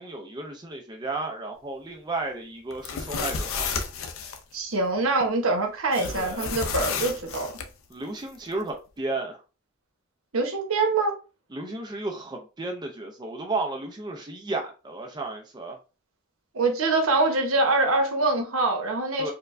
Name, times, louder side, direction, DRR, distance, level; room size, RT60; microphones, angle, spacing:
voice 1, 0.0-3.7 6.1-6.5 7.9-9.4 11.5-15.8 19.2-19.3, right 2 dB, 20° right, 0.5 m, -33 dB
sound 1, 2.7-4.4 5.9-7.7, left 5 dB, 70° left, 0.5 m, -31 dB
voice 2, 4.5-7.5 10.3-11.1 16.5-19.3, right 3 dB, 75° right, 0.9 m, -24 dB
4.4 x 2.1 x 2.5 m
head